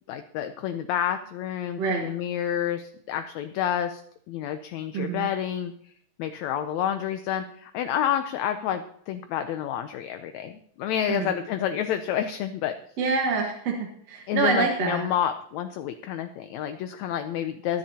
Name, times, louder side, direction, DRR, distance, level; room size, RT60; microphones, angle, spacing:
voice 1, 0.1-4.0 4.3-5.9 6.2-12.7 14.3-17.8, left 10 dB, 75° left, 8 dB, 1.7 m, -29 dB
voice 2, 4.9-5.3 11.1-11.3 13.0-15.1, right 5 dB, 60° right, 0 dB, 2.4 m, -26 dB
21.5 x 10.5 x 2.9 m, 0.67 s
omnidirectional pair, 3.8 m